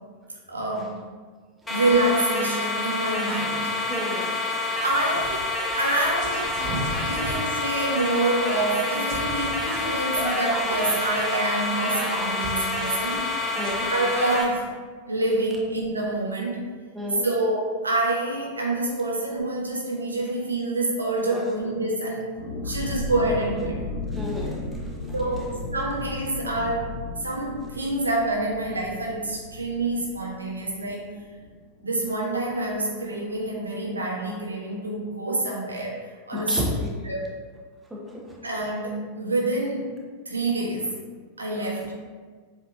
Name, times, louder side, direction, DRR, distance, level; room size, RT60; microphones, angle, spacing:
voice 1, 0.5-1.0 1.7-3.8 4.8-6.5 7.0-13.6 13.9-14.7 15.1-16.7 17.2-22.3 22.6-23.8 25.1-26.9 27.1-31.1 31.8-37.3 38.4-39.9 40.2-40.9 41.4-41.9, right 2 dB, 75° right, -3 dB, 0.9 m, -27 dB
sound 1, 1.7-14.4, left 2 dB, 10° left, 0.6 m, -28 dB
voice 2, 3.9-4.4 13.6-13.9 16.9-17.3 21.3-21.4 24.1-25.2 36.3-36.7 37.9-38.4 41.5-41.9, left 1 dB, 10° right, -3 dB, 0.9 m, -33 dB
sound 2, 4.6-14.7, right 1 dB, 40° right, 0.8 m, -37 dB
sound 3, 22.3-31.8 32.0-32.1 32.4-32.7, left 2 dB, 70° left, 0.9 m, -35 dB
7.3 x 2.8 x 2.5 m, 1.5 s
figure-of-eight pair, 90°, 0 cm